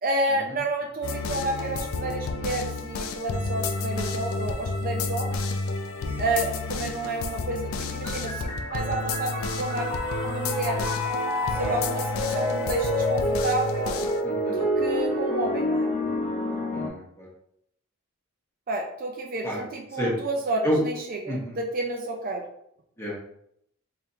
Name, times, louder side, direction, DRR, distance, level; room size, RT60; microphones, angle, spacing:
voice 1, 0.0-5.4 6.2-9.9 10.2-10.9 11.6-14.0 14.5-15.9 18.7-22.5, right 2 dB, 45° right, 2 dB, 0.5 m, -30 dB
sound 1, 1.0-14.2, left 3 dB, 85° left, 0.4 m, -31 dB
sound 2, 8.0-16.9, equal, 30° left, 0.7 m, -29 dB
Wind instrument woodwind instrument, 9.7-13.2, left 1 dB, 10° right, 0.7 m, -33 dB
voice 2, 14.2-14.6 16.7-17.3 19.4-19.6 20.0-20.1 20.6-20.8 21.3-21.6 23.0-23.1, equal, 15° left, -5 dB, 1.2 m, -30 dB
3.6 x 3.5 x 2.8 m, 0.72 s
head